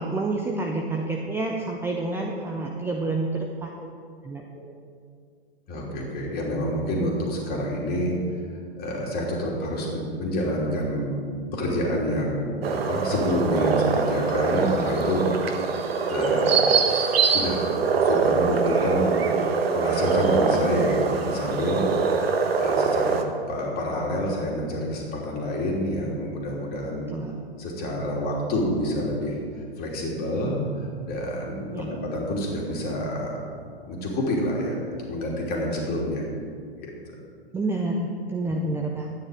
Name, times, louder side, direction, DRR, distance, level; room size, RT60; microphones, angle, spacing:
voice 1, 0.0-3.9 4.2-4.4 27.1-27.4 31.7-31.9 37.5-39.1, right 2 dB, 5° right, 1 dB, 0.6 m, -28 dB
voice 2, 5.7-8.1 8.8-15.7 16.1-17.6 18.0-23.2 23.5-27.1 27.6-33.4 33.8-36.3 36.8-36.9, equal, 30° left, -2 dB, 2.9 m, -28 dB
sound 1, 12.6-23.2, right 5 dB, 65° right, 1.3 m, -23 dB
12.0 x 9.4 x 5.0 m, 2.2 s
hypercardioid pair, 115°, 32 cm